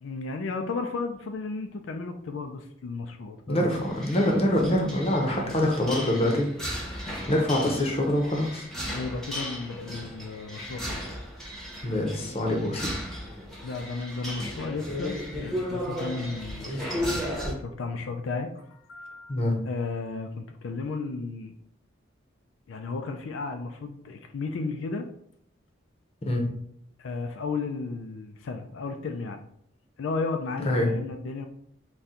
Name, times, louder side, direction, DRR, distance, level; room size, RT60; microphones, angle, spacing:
voice 1, 0.0-3.7 8.9-11.0 13.6-19.4 19.6-21.5 22.7-25.1 27.0-29.4 30.0-31.5, left 3 dB, 80° left, 5 dB, 0.4 m, -34 dB
voice 2, 3.5-6.5 6.9-8.7 11.8-12.9 19.3-19.6 26.3-26.5 30.6-30.9, left 1 dB, 30° left, 1 dB, 0.8 m, -25 dB
sound 1, 3.7-17.5, equal, 5° left, 0.9 m, -35 dB
4.2 x 2.3 x 3.7 m, 0.68 s
head